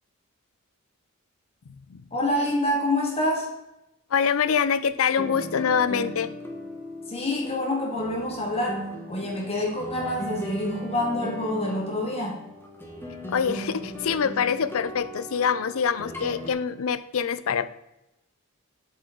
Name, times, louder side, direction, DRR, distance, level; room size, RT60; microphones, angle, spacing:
voice 1, 2.1-3.5 7.1-12.4, left 1 dB, 30° left, -1 dB, 2.2 m, -27 dB
voice 2, 4.1-6.3 13.3-17.7, left 7 dB, 70° left, 14 dB, 0.5 m, -25 dB
sound 1, 5.2-16.5, equal, 10° left, 1.1 m, -37 dB
7.5 x 7.2 x 3.9 m, 0.90 s
head